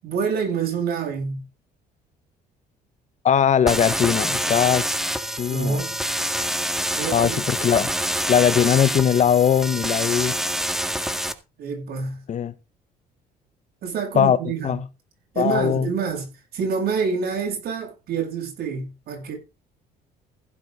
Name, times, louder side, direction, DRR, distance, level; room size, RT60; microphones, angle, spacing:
voice 1, 0.0-1.4 5.5-6.0 7.0-7.4 11.6-12.2 13.8-14.8 15.3-19.3, right 5 dB, 70° right, 7.9 m, -27 dB
voice 2, 3.2-4.8 5.4-5.8 7.1-7.9 8.3-10.4 12.3-12.5 14.1-14.4 14.6-14.8 15.4-15.9, left 8 dB, 45° left, 1.5 m, -20 dB
sound 1, 3.7-11.3, equal, ahead, 1.9 m, -26 dB
16.0 x 9.0 x 3.9 m
cardioid pair, 110°, 17 cm